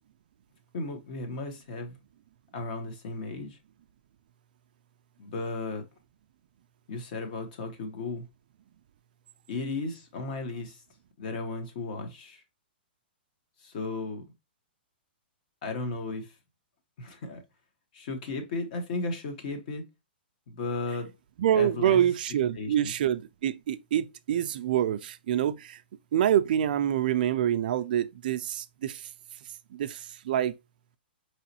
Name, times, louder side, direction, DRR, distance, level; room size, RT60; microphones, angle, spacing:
voice 1, 0.7-2.0 2.5-3.6 5.2-5.8 6.9-8.2 9.5-10.8 11.2-12.4 13.6-14.2 15.6-16.3 17.0-17.4 17.9-19.8 20.5-21.1 21.5-22.1 22.5-22.9, left 3 dB, 50° left, 1.2 m, -35 dB
voice 2, 21.4-25.8 26.1-29.1 29.7-30.6, right 10 dB, 55° right, 0.3 m, -26 dB
4.7 x 3.0 x 2.8 m
hypercardioid pair, 155°, 6 cm